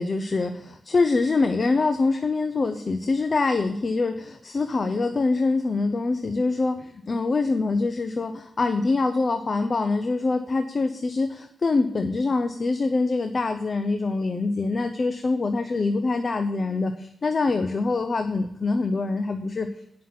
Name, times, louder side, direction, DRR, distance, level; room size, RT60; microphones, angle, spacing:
voice 1, 0.0-19.7, left 3 dB, 35° left, 7 dB, 0.6 m, -24 dB
9.5 x 6.0 x 5.8 m, 0.77 s
wide cardioid pair, 120°, 0 cm